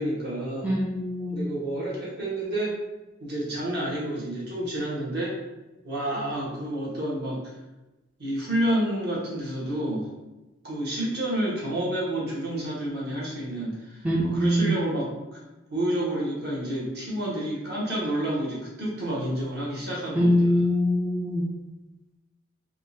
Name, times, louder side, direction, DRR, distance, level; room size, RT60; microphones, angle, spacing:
voice 1, 0.0-0.7 1.3-2.7 3.2-5.4 5.8-7.5 8.2-10.1 10.6-15.4 15.7-20.7, right 1 dB, 55° right, -6 dB, 1.2 m, -29 dB
voice 2, 0.6-1.5 14.0-14.7 20.2-21.5, equal, 10° right, -5 dB, 0.3 m, -23 dB
3.6 x 2.4 x 2.6 m, 1.0 s
head